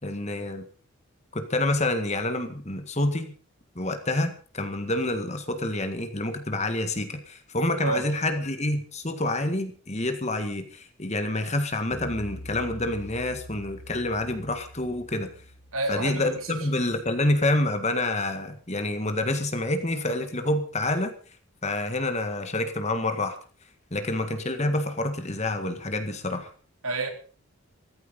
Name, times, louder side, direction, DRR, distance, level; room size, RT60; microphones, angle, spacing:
voice 1, 0.0-0.7 1.3-3.3 3.8-15.3 15.9-21.1 21.6-23.4 23.9-26.5, left 2 dB, 30° left, 1.8 m, -27 dB
sound 1, 11.9-17.2, left 1 dB, 45° left, 1.4 m, -45 dB
voice 2, 15.7-16.7 26.8-27.1, right 2 dB, 70° right, 3.5 m, -29 dB
14.5 x 14.0 x 5.4 m
head